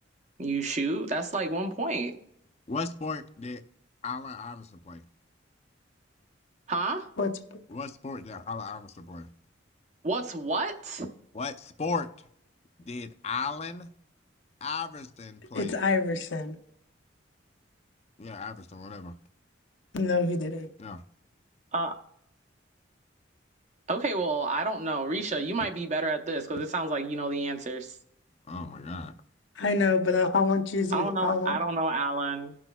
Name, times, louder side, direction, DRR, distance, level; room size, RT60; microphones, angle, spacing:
voice 1, 0.4-2.2 6.7-7.1 10.0-11.1 21.7-21.9 23.9-28.0 30.9-32.6, right 3 dB, 40° right, 0.7 m, -30 dB
voice 2, 2.7-3.6 4.0-5.0 7.7-9.3 11.3-12.1 12.9-13.9 14.6-15.7 18.2-19.1 20.8-21.0 28.5-29.1, left 4 dB, 35° left, 0.5 m, -36 dB
voice 3, 15.5-16.6 19.9-20.7 29.6-31.6, left 4 dB, 80° left, 0.8 m, -26 dB
18.0 x 6.1 x 2.3 m
head